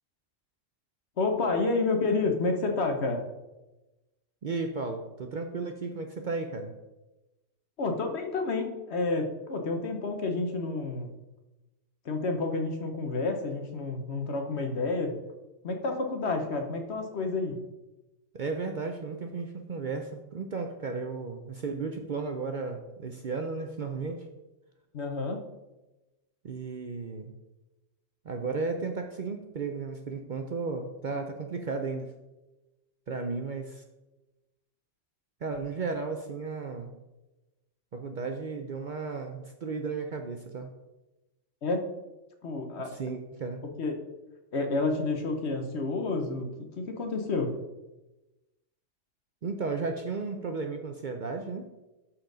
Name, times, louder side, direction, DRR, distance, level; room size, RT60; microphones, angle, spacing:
voice 1, 1.2-3.2 7.8-11.1 12.0-15.2 15.6-17.6 24.9-25.4 41.6-41.9 42.4-43.0 43.8-43.9 44.5-47.5, left 3 dB, 60° left, 5 dB, 1.2 m, -29 dB
voice 2, 4.4-6.7 18.3-24.3 26.4-27.3 28.2-32.1 33.1-33.8 35.4-36.9 37.9-40.7 43.0-43.6 49.4-51.7, right 4 dB, 50° right, 4 dB, 0.6 m, -34 dB
12.0 x 4.4 x 3.9 m, 1.0 s
omnidirectional pair, 1.3 m